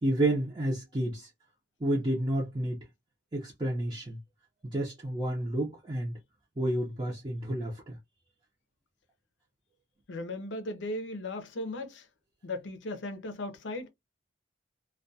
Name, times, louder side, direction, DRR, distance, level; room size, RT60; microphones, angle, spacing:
voice 1, 0.0-1.3 1.8-2.8 3.3-4.2 4.7-6.1 6.6-8.0, right 1 dB, 25° right, 0.6 m, -30 dB
voice 2, 10.1-12.1 12.4-13.9, left 2 dB, 80° left, 0.6 m, -37 dB
2.3 x 2.2 x 2.6 m
head